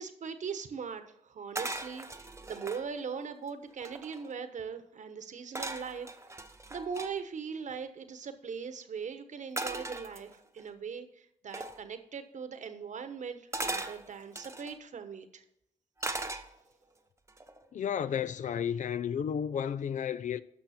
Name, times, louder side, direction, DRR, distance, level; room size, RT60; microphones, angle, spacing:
voice 1, 0.0-6.1 6.7-15.4, right 6 dB, 60° right, 1.1 m, -40 dB
sound 1, 1.5-2.8 3.4-3.5 3.7-4.3 5.5-7.1 9.6-10.6 11.5-11.8 13.5-14.7 16.0-16.8 17.3-17.6, right 2 dB, 20° right, 1.0 m, -38 dB
voice 2, 17.7-20.4, left 8 dB, 60° left, 0.5 m, -32 dB
11.5 x 6.1 x 4.3 m
cardioid pair, 60°, 14 cm